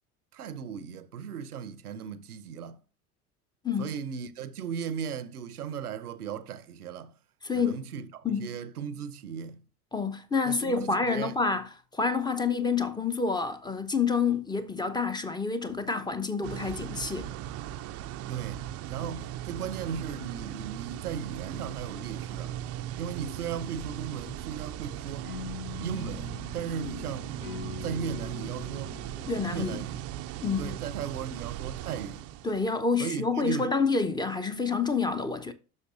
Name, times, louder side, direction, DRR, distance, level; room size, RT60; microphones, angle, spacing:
voice 1, 0.3-2.8 3.8-7.1 7.5-9.6 10.4-11.3 18.3-22.6 23.0-25.3 25.8-27.3 27.8-28.9 29.5-30.0 30.6-32.3 33.0-33.7, right 7 dB, 75° right, 0.8 m, -37 dB
voice 2, 3.6-3.9 7.4-7.8 8.2-8.5 9.9-17.3 29.2-29.8 30.4-30.8 32.4-35.5, left 4 dB, 10° left, 0.7 m, -28 dB
sound 1, 16.4-32.8, right 12 dB, 35° right, 0.5 m, -38 dB
sound 2, 25.2-30.4, left 7 dB, 75° left, 1.7 m, -43 dB
10.5 x 6.5 x 2.5 m
figure-of-eight pair, 70°, 45 cm